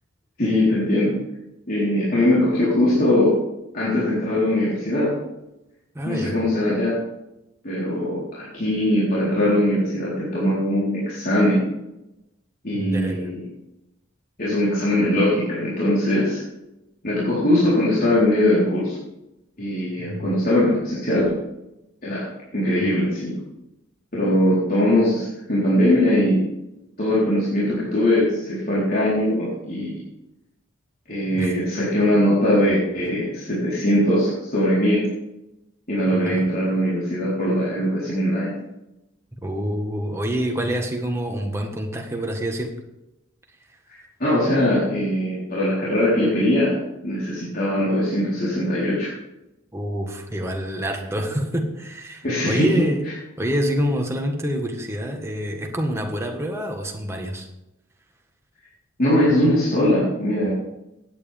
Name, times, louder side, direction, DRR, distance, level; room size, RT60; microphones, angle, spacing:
voice 1, 0.4-1.1 1.7-3.4 3.7-5.1 6.0-7.0 7.6-11.7 12.6-13.4 14.4-16.4 17.0-19.0 19.6-21.3 22.0-22.2 22.5-23.3 24.1-26.4 27.0-30.0 31.1-35.1 35.9-38.5 43.9-46.8 47.0-49.1 52.2-52.8 59.0-60.5, left 1 dB, 45° left, -9 dB, 4.1 m, -21 dB
voice 2, 5.9-6.4 12.7-13.3 20.0-20.4 31.3-31.6 36.1-36.4 39.4-42.7 49.7-53.1 53.4-57.5, equal, 15° right, 2 dB, 1.5 m, -27 dB
16.0 x 9.6 x 3.6 m, 0.92 s
head